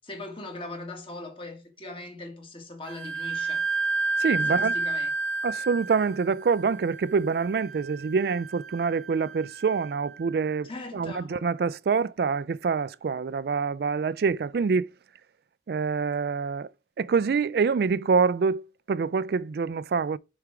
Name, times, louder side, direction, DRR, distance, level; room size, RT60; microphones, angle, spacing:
voice 1, 0.0-3.6 4.5-5.1 10.6-11.5, left 2 dB, 30° left, 1.8 m, -40 dB
Wind instrument woodwind instrument, 2.9-10.3, right 3 dB, 80° right, 1.1 m, -31 dB
voice 2, 4.2-4.7 5.4-14.9 15.7-16.7 17.0-20.2, right 5 dB, 60° right, 0.3 m, -26 dB
6.7 x 4.9 x 4.7 m
head